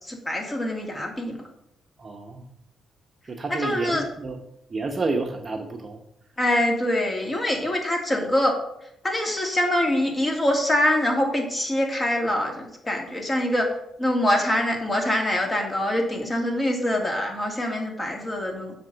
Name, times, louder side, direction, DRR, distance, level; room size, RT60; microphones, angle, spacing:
voice 1, 0.0-1.4 3.5-4.0 6.4-8.6 9.0-13.7 14.0-18.7, left 1 dB, 20° left, 1 dB, 2.2 m, -24 dB
voice 2, 2.0-2.5 3.3-4.4 4.7-6.0, right 3 dB, 30° right, 3 dB, 0.9 m, -30 dB
7.3 x 4.3 x 6.7 m, 0.78 s
cardioid pair, 90°, 0 cm